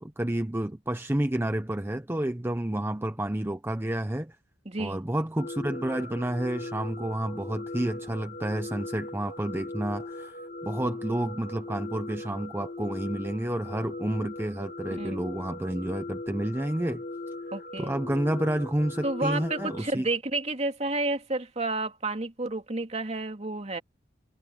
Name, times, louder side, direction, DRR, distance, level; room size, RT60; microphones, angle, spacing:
voice 1, 0.0-4.4 4.8-10.4 10.6-17.0 17.8-20.1, right 1 dB, 10° right, 0.7 m, -30 dB
voice 2, 4.6-5.0 14.9-15.2 17.5-17.9 19.0-23.8, right 2 dB, 35° right, 2.7 m, -30 dB
sound 1, 5.4-19.9, left 2 dB, 35° left, 2.0 m, -39 dB
head